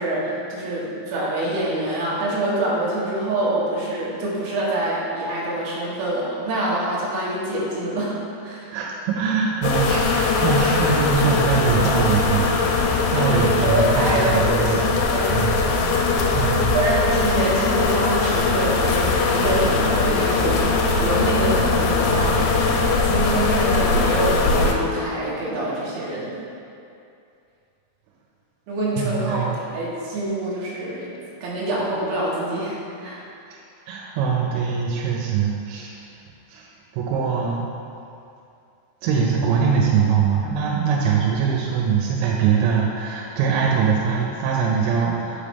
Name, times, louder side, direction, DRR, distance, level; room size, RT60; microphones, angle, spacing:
voice 1, 0.0-8.2 8.4-8.7 13.2-15.4 15.9-22.7 23.0-26.4 28.7-33.2, right 1 dB, 75° right, -6 dB, 2.4 m, -26 dB
voice 2, 8.7-15.0 15.3-15.5 16.3-16.6 29.0-29.5 33.5-33.6 33.9-35.9 36.5-37.6 39.0-45.4, right 6 dB, 90° right, -2 dB, 3.1 m, -22 dB
sound 1, 9.6-24.7, left 3 dB, 80° left, 2.7 m, -20 dB
6.2 x 5.4 x 3.4 m, 2.6 s
omnidirectional pair, 5.5 m